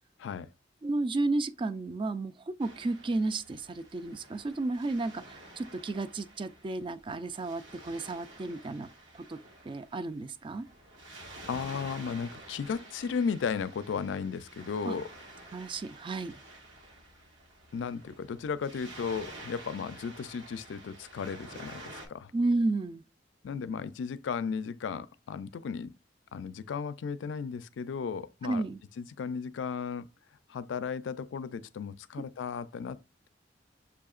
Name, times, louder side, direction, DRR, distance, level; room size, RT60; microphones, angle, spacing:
voice 1, 0.2-0.5 11.5-15.0 17.7-22.3 23.4-25.9 26.3-28.6 29.0-30.1 30.5-33.0, left 6 dB, 80° left, 0.4 m, -35 dB
voice 2, 0.8-8.9 9.1-9.4 9.6-10.7 14.8-14.9 15.5-16.3 22.3-23.0 28.4-28.8, right 2 dB, 30° right, 0.3 m, -32 dB
Waves surf, 2.6-22.1, right 2 dB, 85° right, 1.4 m, -50 dB
6.9 x 2.8 x 2.4 m
head